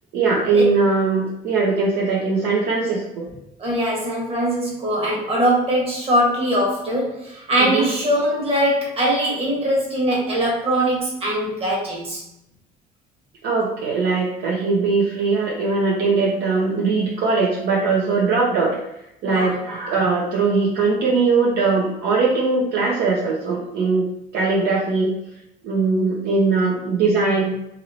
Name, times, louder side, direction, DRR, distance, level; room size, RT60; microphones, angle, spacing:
voice 1, 0.1-3.3 7.6-7.9 13.4-18.8 19.2-25.1 25.6-27.6, right 4 dB, 75° right, -3 dB, 0.6 m, -20 dB
voice 2, 3.6-12.2 19.2-19.6, equal, 35° right, -3 dB, 1.2 m, -21 dB
2.9 x 2.8 x 2.7 m, 0.81 s
cardioid pair, 110°, 17 cm